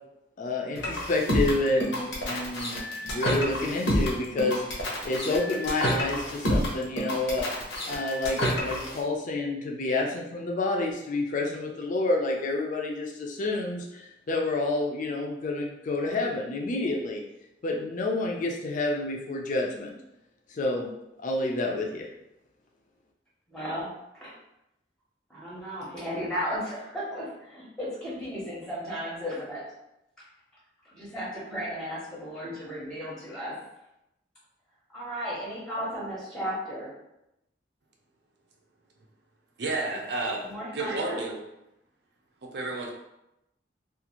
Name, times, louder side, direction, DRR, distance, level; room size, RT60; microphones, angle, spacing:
voice 1, 0.4-7.5 7.9-17.2 17.6-19.9 20.5-20.9 21.2-22.1, left 2 dB, 45° left, 0 dB, 0.4 m, -29 dB
sound 1, 0.8-9.0, equal, 90° left, 0.8 m, -29 dB
voice 2, 23.5-24.4 25.3-29.6 30.9-33.6 34.9-36.9 40.4-41.2, equal, 5° left, -6 dB, 0.7 m, -35 dB
voice 3, 39.6-40.4 40.7-41.4 42.5-42.9, right 2 dB, 65° right, 1 dB, 0.5 m, -30 dB
2.5 x 2.4 x 2.9 m, 0.87 s
head